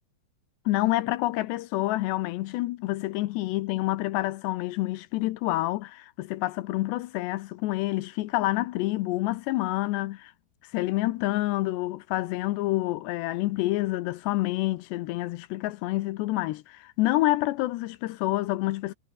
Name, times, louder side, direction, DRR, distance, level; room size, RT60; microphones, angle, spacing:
voice 1, 0.7-10.3 10.7-18.9, left 17 dB, 75° left, 2.8 m, -28 dB
omnidirectional pair, 5.3 m